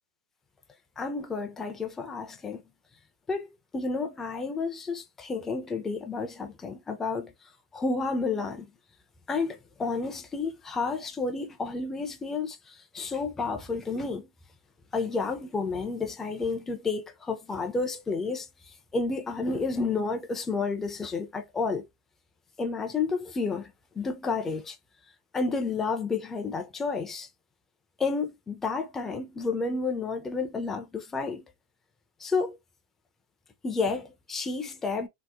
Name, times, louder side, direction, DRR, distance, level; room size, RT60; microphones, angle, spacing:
voice 1, 1.0-2.6 3.3-3.5 3.7-7.3 7.7-8.7 9.3-12.6 12.9-14.3 14.9-18.5 18.9-21.9 22.6-23.7 24.0-24.8 25.3-27.3 28.0-31.4 32.2-32.6 33.6-35.1, left 4 dB, 10° left, 0.5 m, -30 dB
2.8 x 2.1 x 3.4 m
supercardioid pair, 150°, 3 cm